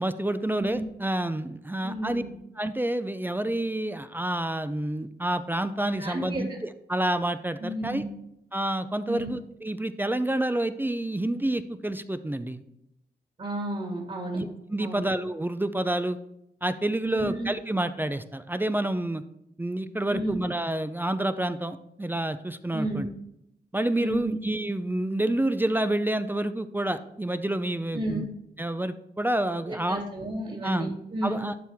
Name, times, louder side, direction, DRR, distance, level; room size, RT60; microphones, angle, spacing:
voice 1, 0.0-2.2 2.6-8.0 8.5-12.6 14.3-16.2 16.6-19.2 19.6-23.1 23.7-28.3 28.6-30.0 30.6-30.9 31.2-31.6, right 1 dB, 10° right, 11 dB, 0.5 m, -28 dB
voice 2, 0.6-0.9 1.8-2.3 6.0-6.4 7.6-8.1 9.1-9.3 13.4-14.4 14.8-15.0 17.0-17.3 20.1-20.4 22.7-23.1 24.0-24.3 27.9-28.3 29.7-31.4, right 1 dB, 45° right, -2 dB, 2.4 m, -32 dB
12.0 x 4.4 x 3.5 m, 0.82 s
cardioid pair, 65°, 17 cm